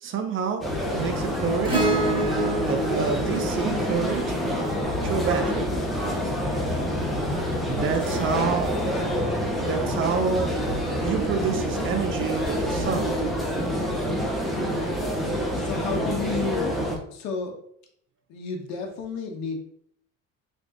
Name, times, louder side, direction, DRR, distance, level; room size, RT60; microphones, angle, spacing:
voice 1, 0.0-1.9 2.7-4.4 5.0-5.7 7.6-8.7 9.5-13.1, right 6 dB, 40° right, 7 dB, 0.5 m, -28 dB
sound 1, 0.6-17.0, equal, ahead, 0.7 m, -27 dB
Acoustic guitar / Strum, 1.7-6.3 8.1-8.2, right 2 dB, 15° right, 1.3 m, -29 dB
sound 2, 4.7-13.3, equal, 40° left, 1.3 m, -37 dB
voice 2, 15.5-16.7 17.1-17.6 18.3-19.8, left 4 dB, 60° left, 3 dB, 0.9 m, -32 dB
3.4 x 2.4 x 3.8 m, 0.69 s
cardioid pair, 120°, 31 cm